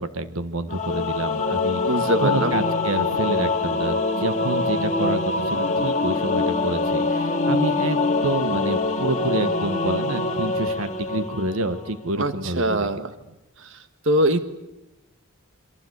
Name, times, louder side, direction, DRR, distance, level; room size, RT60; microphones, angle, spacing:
voice 1, 0.0-1.8 2.2-13.0, right 2 dB, 85° right, 10 dB, 1.7 m, -28 dB
Singing / Musical instrument, 0.7-12.0, left 3 dB, 35° left, 2.4 m, -24 dB
voice 2, 1.8-2.5 12.2-13.1 13.6-13.8 14.0-14.4, right 1 dB, 60° right, 9 dB, 1.6 m, -22 dB
27.5 x 26.0 x 8.2 m, 0.92 s
head